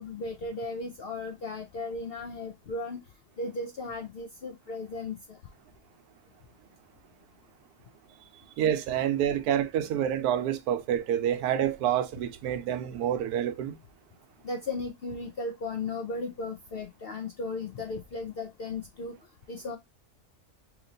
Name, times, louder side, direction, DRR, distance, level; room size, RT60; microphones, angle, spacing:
voice 1, 0.0-3.0 3.4-5.4 14.4-19.1 19.5-19.8, left 3 dB, 70° left, 0.5 m, -36 dB
voice 2, 8.6-13.8, right 10 dB, 85° right, 1.1 m, -28 dB
2.9 x 2.9 x 3.8 m
omnidirectional pair, 1.6 m